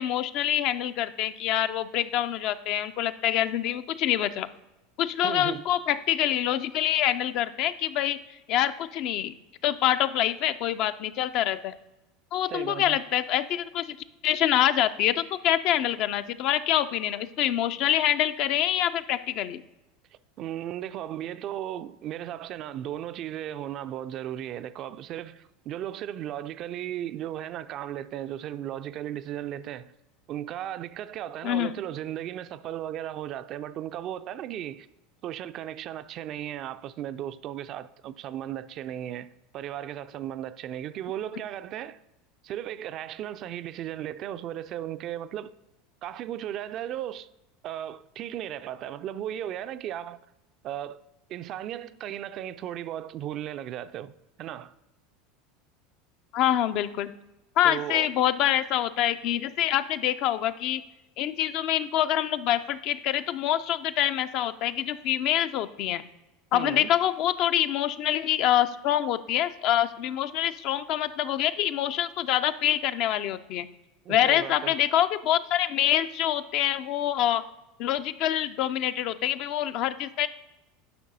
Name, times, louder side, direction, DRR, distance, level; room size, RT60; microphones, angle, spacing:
voice 1, 0.0-4.5 5.0-8.2 8.5-9.3 9.6-11.7 12.3-14.0 14.2-19.6 31.4-31.7 56.3-57.1 57.6-60.8 61.2-66.0 66.5-73.7 74.1-77.4 77.8-80.3, left 12 dB, 50° left, 0.4 m, -26 dB
voice 2, 5.2-5.6 12.5-13.0 20.4-29.9 30.3-34.9 35.2-42.0 42.4-45.5 46.0-47.3 47.6-50.2 50.6-51.0 51.3-54.1 54.4-54.7 57.6-58.1 66.5-66.9 74.1-74.8, right 11 dB, 45° right, 0.3 m, -36 dB
11.0 x 5.8 x 2.7 m
figure-of-eight pair, 75°, 0 cm